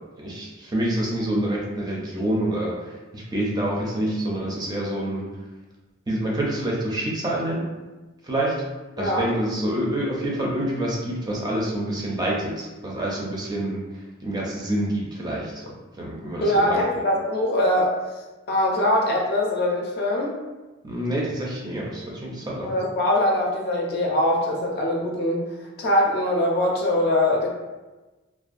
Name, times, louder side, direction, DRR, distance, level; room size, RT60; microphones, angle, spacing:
voice 1, 0.2-2.7 3.1-5.3 6.1-7.7 8.2-8.5 9.0-13.8 14.2-15.6 16.0-16.8 20.8-22.7, right 1 dB, 20° right, -4 dB, 0.4 m, -27 dB
voice 2, 9.0-9.3 16.4-17.9 18.5-20.3 22.6-25.4 25.8-27.5, left 1 dB, 50° left, -1 dB, 0.5 m, -22 dB
2.5 x 2.2 x 2.4 m, 1.2 s
head